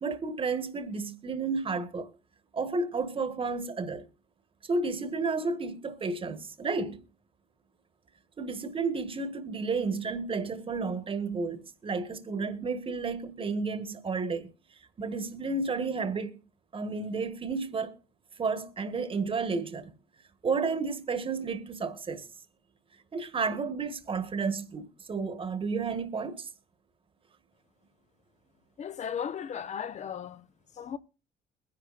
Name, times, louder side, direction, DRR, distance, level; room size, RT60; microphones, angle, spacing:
voice 1, 0.0-2.1 2.5-4.0 4.6-7.0 8.4-14.5 15.0-16.4 16.7-18.0 18.4-19.9 20.4-22.3 23.1-26.5, right 4 dB, 30° right, 1.5 m, -32 dB
voice 2, 28.8-30.5 30.8-31.0, left 8 dB, 45° left, 0.9 m, -36 dB
21.5 x 11.0 x 2.5 m
cardioid pair, 110°, 17 cm